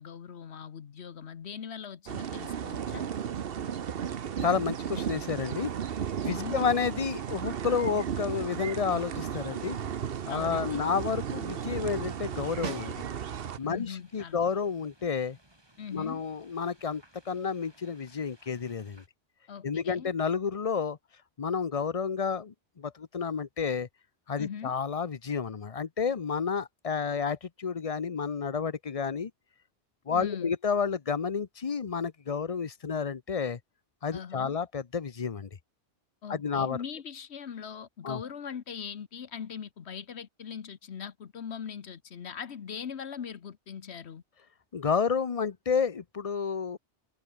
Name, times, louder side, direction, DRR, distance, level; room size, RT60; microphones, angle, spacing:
voice 1, 0.0-3.0 6.3-6.6 10.3-10.9 13.6-14.4 15.8-16.2 19.5-20.1 24.4-24.7 30.1-30.6 34.1-34.6 36.2-44.2, left 7 dB, 65° left, 1.3 m, -40 dB
sound 1, 2.1-13.6, right 8 dB, 55° right, 1.0 m, -35 dB
voice 2, 4.4-5.7 6.2-9.8 10.3-13.0 13.6-15.4 15.9-19.0 19.6-21.0 21.4-23.9 24.3-29.3 30.1-33.6 34.0-35.5 36.3-36.8 38.0-38.2 44.7-46.8, left 6 dB, 35° left, 0.8 m, -30 dB
sound 2, 6.3-19.1, right 1 dB, 20° right, 3.7 m, -61 dB
Snare drum, 12.6-13.5 18.0-18.1, right 4 dB, 90° right, 2.4 m, -40 dB
omnidirectional pair, 1.2 m